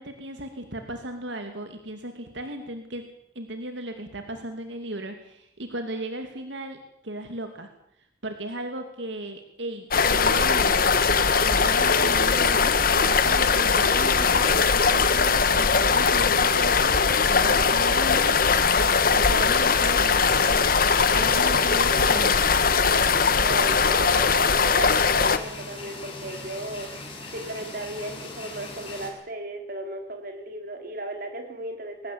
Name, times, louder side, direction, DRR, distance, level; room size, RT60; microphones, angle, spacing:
voice 1, 0.0-3.0 3.3-6.8 7.0-7.7 8.2-10.9 11.4-14.6 14.9-18.4 18.9-20.7 21.1-22.7, right 1 dB, 80° right, 5 dB, 2.8 m, -36 dB
sound 1, 9.9-25.4, left 5 dB, 50° left, 1.4 m, -20 dB
sound 2, 19.9-29.1, left 2 dB, 30° left, 7.3 m, -40 dB
voice 2, 21.3-22.2 23.4-26.9 27.3-32.1, right 1 dB, 50° right, 4 dB, 4.3 m, -35 dB
22.5 x 19.0 x 8.7 m, 0.76 s
head